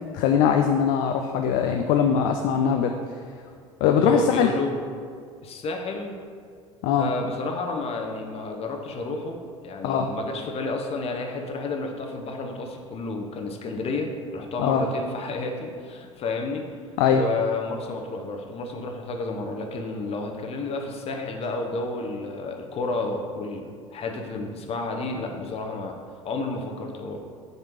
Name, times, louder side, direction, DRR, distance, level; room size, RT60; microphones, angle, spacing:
voice 1, 0.1-2.9 3.8-4.5 6.8-7.1 9.8-10.1 14.6-14.8 17.0-17.2, left 7 dB, 55° left, 4 dB, 0.4 m, -21 dB
voice 2, 4.0-4.8 5.4-6.1 7.0-16.6 17.1-25.9 26.2-27.2, left 3 dB, 35° left, 2 dB, 0.9 m, -31 dB
6.6 x 3.4 x 4.6 m, 2.1 s
figure-of-eight pair, 65°, 17 cm